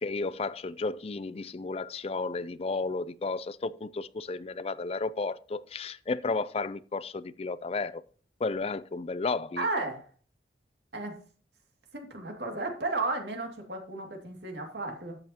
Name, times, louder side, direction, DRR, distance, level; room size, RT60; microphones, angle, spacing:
voice 1, 0.0-8.0 8.4-9.7, left 3 dB, 35° left, 0.4 m, -33 dB
voice 2, 9.6-10.0 10.9-11.1 11.9-15.2, right 2 dB, 75° right, 2.4 m, -33 dB
12.5 x 8.7 x 2.9 m
head